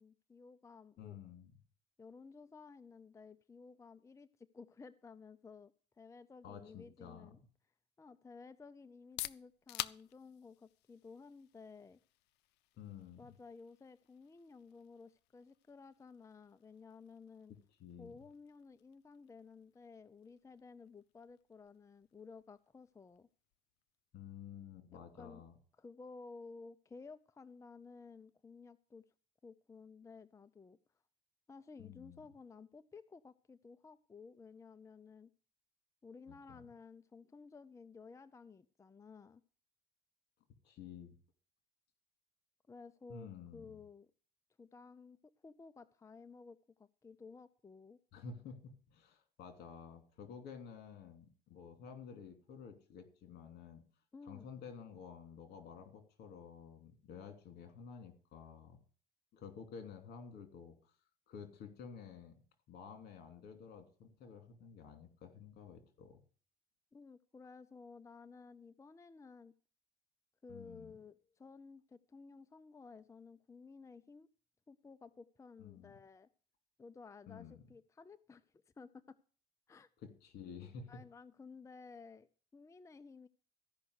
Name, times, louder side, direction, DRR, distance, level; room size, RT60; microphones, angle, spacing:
voice 1, 0.0-1.2 2.0-7.4 8.0-12.0 13.2-17.5 18.0-23.3 25.2-25.4 25.8-29.0 29.4-30.8 31.5-35.3 36.0-39.4 42.7-44.1 44.6-45.2 45.4-48.0 54.1-54.5 66.9-69.5 70.4-74.3 74.7-76.3 76.8-78.5 78.8-79.2 79.7-79.9 80.9-83.3, left 4 dB, 20° left, 13 dB, 0.5 m, -55 dB
voice 2, 1.0-1.5 6.4-7.3 12.8-13.2 17.8-18.2 24.1-25.6 31.8-32.3 36.3-36.6 40.6-41.1 43.1-43.8 48.1-53.8 54.2-58.8 59.3-60.9 61.3-62.3 62.7-66.2 70.5-70.9 75.6-75.9 77.3-77.6 80.0-81.0, left 6 dB, 70° left, 7 dB, 2.9 m, -51 dB
sound 1, 8.9-24.5, left 17 dB, 85° left, 0.5 m, -52 dB
14.5 x 5.6 x 8.0 m, 0.42 s
cardioid pair, 110°, 17 cm